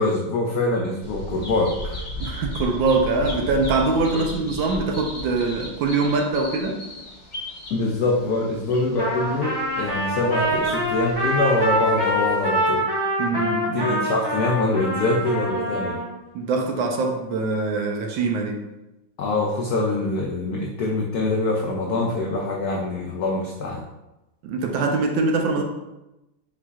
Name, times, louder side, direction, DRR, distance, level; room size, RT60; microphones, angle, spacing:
voice 1, 0.0-2.3 4.1-4.2 7.7-12.8 13.3-13.4 13.7-16.0 19.2-23.8, left 2 dB, 80° left, -1 dB, 0.8 m, -24 dB
Bird vocalization bird call bird song, 1.0-12.4, left 1 dB, 20° left, 1.1 m, -36 dB
voice 2, 2.2-6.9 13.2-14.0 16.3-18.6 24.4-25.6, right 3 dB, 75° right, 3 dB, 1.3 m, -23 dB
Trumpet, 9.0-16.1, equal, 20° right, 0.6 m, -25 dB
4.6 x 4.0 x 2.3 m, 0.97 s
omnidirectional pair, 2.2 m